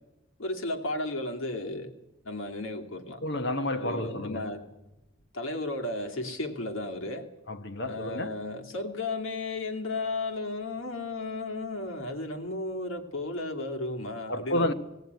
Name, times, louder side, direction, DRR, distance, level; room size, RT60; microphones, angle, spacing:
voice 1, 0.4-1.9 2.2-3.2 3.8-4.6 5.3-7.3 7.8-14.7, left 2 dB, 75° left, 2.5 m, -34 dB
voice 2, 3.2-4.5 7.5-8.3 14.3-14.7, left 1 dB, 55° left, 1.3 m, -30 dB
17.5 x 17.0 x 9.3 m
head